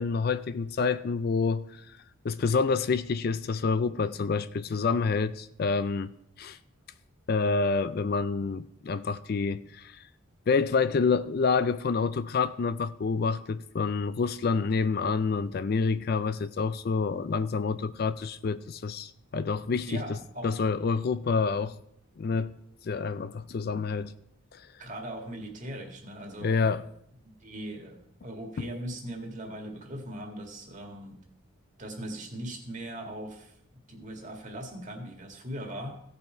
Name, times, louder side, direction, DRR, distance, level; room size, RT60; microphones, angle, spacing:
voice 1, 0.0-1.7 2.2-6.6 7.3-10.0 10.5-20.0 20.4-21.8 22.2-22.5 22.8-24.1 24.5-24.6 26.4-26.8 28.6-28.7, left 4 dB, 45° left, 0.4 m, -28 dB
voice 2, 19.9-20.5 24.8-26.8 27.2-31.2 31.8-33.6 33.9-36.0, right 1 dB, 35° right, 1.9 m, -39 dB
16.5 x 5.6 x 4.5 m
head